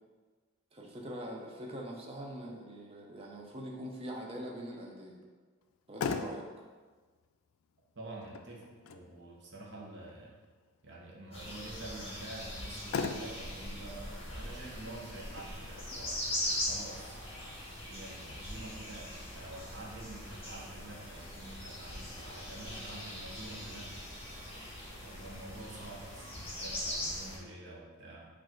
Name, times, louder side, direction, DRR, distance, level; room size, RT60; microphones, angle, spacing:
voice 1, 0.7-5.2 5.9-6.5, equal, 25° right, 0 dB, 0.5 m, -43 dB
Motor vehicle (road), 5.6-18.6, left 5 dB, 75° left, 0.3 m, -44 dB
voice 2, 8.0-10.3 10.8-16.4 16.7-17.2 17.8-23.9 25.0-28.3, right 2 dB, 55° right, -2 dB, 0.9 m, -48 dB
sound 1, 11.3-27.4, left 1 dB, 25° left, 1.1 m, -41 dB
4.6 x 2.5 x 4.4 m, 1.4 s
head